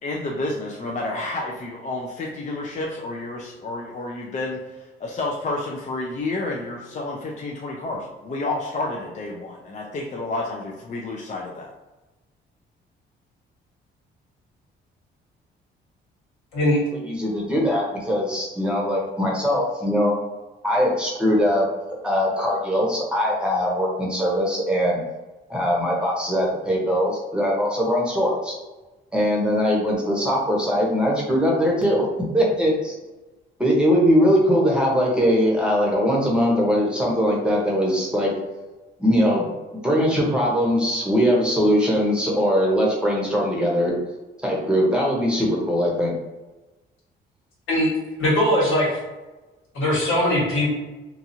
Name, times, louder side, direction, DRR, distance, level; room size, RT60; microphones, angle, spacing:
voice 1, 0.0-11.7, left 2 dB, 40° left, -1 dB, 0.4 m, -30 dB
voice 2, 17.1-20.2 20.6-21.6 22.0-25.0 25.5-28.5 29.1-32.1 32.3-32.9 33.6-38.3 39.0-39.5 39.8-43.9 44.4-46.1, equal, 5° right, -3 dB, 0.9 m, -21 dB
voice 3, 48.2-49.0 49.7-50.7, left 1 dB, 90° left, -6 dB, 1.4 m, -20 dB
2.9 x 2.4 x 2.6 m, 1.1 s
cardioid pair, 90°, 20 cm